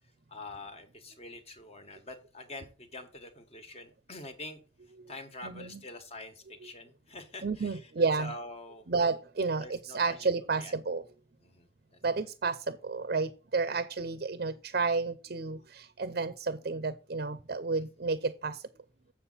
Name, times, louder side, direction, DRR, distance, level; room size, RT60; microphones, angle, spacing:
voice 1, 0.3-4.6 5.1-8.9 9.6-10.7 11.4-12.0 17.8-17.9, left 2 dB, 35° left, 1.5 m, -46 dB
voice 2, 5.4-5.8 7.4-8.3 8.9-11.0 12.0-18.6, right 4 dB, 55° right, 0.6 m, -31 dB
7.5 x 7.2 x 4.0 m
head